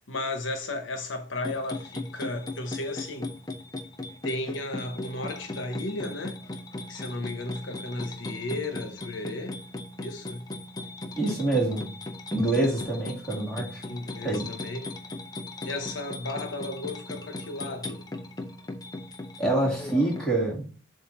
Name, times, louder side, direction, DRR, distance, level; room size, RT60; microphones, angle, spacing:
voice 1, 0.1-3.3 4.2-6.4 6.9-9.6 10.0-10.5 13.9-14.9 15.6-18.0, left 2 dB, 70° left, 0.9 m, -34 dB
chineeplay-mono, 1.4-20.2, left 2 dB, 20° left, 0.6 m, -38 dB
voice 2, 11.2-11.8 12.3-13.8 14.2-14.5 19.4-20.7, right 2 dB, 5° left, 2.1 m, -26 dB
7.5 x 2.7 x 5.8 m
head